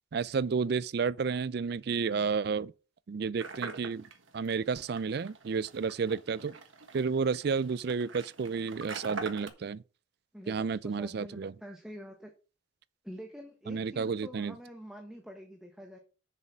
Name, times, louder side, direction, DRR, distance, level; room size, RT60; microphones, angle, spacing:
voice 1, 0.1-2.7 3.1-4.1 4.3-6.6 6.9-9.8 10.5-11.5 13.7-14.5, right 5 dB, 55° right, 0.4 m, -31 dB
sound 1, 3.4-9.5, right 4 dB, 80° right, 1.5 m, -44 dB
voice 2, 10.3-12.3 13.0-16.0, equal, 5° right, 1.1 m, -46 dB
7.1 x 6.6 x 5.7 m
head